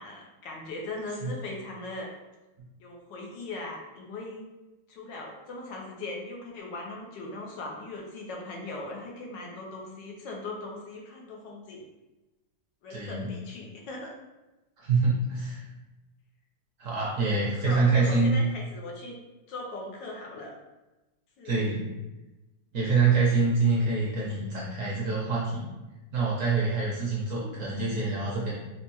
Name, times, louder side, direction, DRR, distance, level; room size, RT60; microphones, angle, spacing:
voice 1, 0.0-2.1 2.8-4.5 4.9-11.9 12.8-14.1 17.6-19.2 19.5-20.5 21.4-21.7 27.3-27.6, left 2 dB, 85° left, -1 dB, 1.4 m, -39 dB
voice 2, 12.9-13.3 14.8-15.7 16.8-18.3 21.4-21.9 22.7-25.7 26.1-28.5, right 4 dB, 60° right, -5 dB, 0.9 m, -26 dB
4.3 x 2.2 x 2.8 m, 1.1 s
omnidirectional pair, 1.9 m